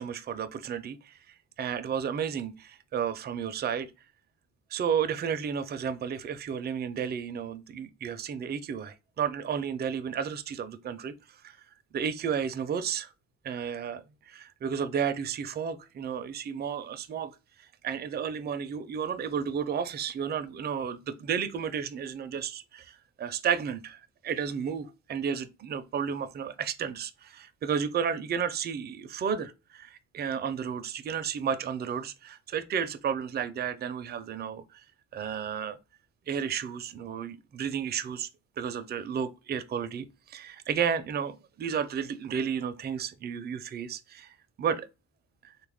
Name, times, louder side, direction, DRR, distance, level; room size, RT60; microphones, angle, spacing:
voice 1, 0.0-3.9 4.7-11.1 11.4-11.6 11.9-13.1 13.4-17.3 17.8-34.8 35.1-35.8 36.3-38.3 38.6-44.9, right 7 dB, 35° right, 0.4 m, -32 dB
3.3 x 2.3 x 3.4 m
cardioid pair, 90°, 30 cm